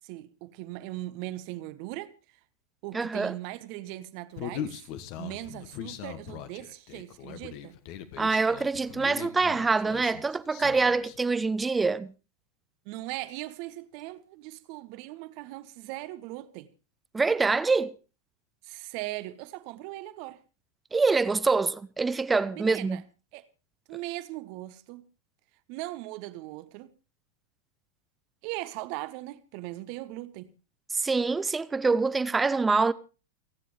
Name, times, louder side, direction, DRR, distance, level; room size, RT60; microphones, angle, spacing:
voice 1, 0.0-2.4 2.8-4.9 5.2-7.8 12.8-16.7 18.6-20.4 22.5-23.0 23.3-23.5 23.9-25.0 25.7-26.9 28.4-30.5, right 17 dB, 45° right, 1.2 m, -39 dB
voice 2, 2.9-3.3 8.2-12.1 17.1-17.9 20.9-23.0 30.9-32.9, right 4 dB, 10° right, 0.8 m, -25 dB
Human voice, 4.4-11.2, left 10 dB, 45° left, 1.7 m, -40 dB
29.5 x 9.9 x 3.4 m
figure-of-eight pair, 90°, 0 cm